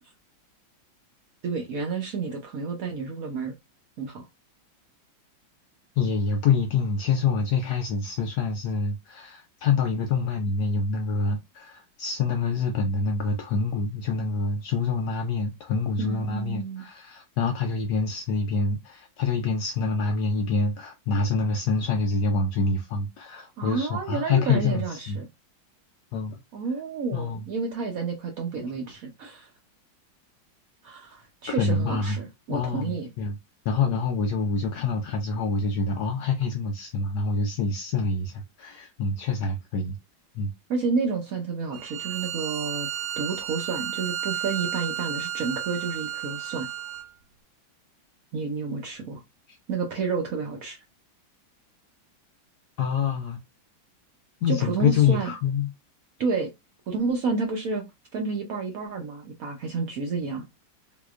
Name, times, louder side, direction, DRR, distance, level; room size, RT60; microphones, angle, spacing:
voice 1, 1.4-3.5 4.0-4.3 16.0-16.8 23.6-25.3 26.5-29.5 30.8-33.1 40.7-42.9 43.2-46.7 48.3-49.2 49.7-50.8 54.5-55.3 56.2-56.5 56.9-57.9 58.1-60.4, right 4 dB, 65° right, 0.9 m, -30 dB
voice 2, 6.0-25.2 26.1-26.4 27.1-27.5 31.6-32.2 32.5-33.4 33.7-40.0 40.3-40.5 49.5-49.6 52.8-53.4 54.4-55.7, left 4 dB, 75° left, 0.9 m, -26 dB
Bowed string instrument, 41.7-47.1, right 10 dB, 85° right, 1.5 m, -32 dB
3.7 x 2.8 x 2.4 m
omnidirectional pair, 2.1 m